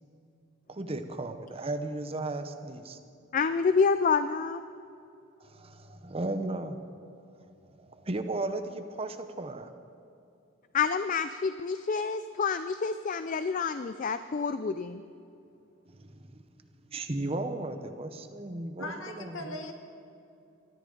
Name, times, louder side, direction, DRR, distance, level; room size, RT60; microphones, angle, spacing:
voice 1, 0.7-3.0 5.4-6.8 7.8-9.7 15.9-16.4 16.9-19.6, right 2 dB, 30° right, 8 dB, 0.8 m, -35 dB
voice 2, 3.3-4.6 10.7-15.0, left 5 dB, 40° left, 11 dB, 0.4 m, -28 dB
voice 3, 18.8-19.7, left 2 dB, 65° left, 4 dB, 1.7 m, -39 dB
22.0 x 13.5 x 3.9 m, 2.7 s
head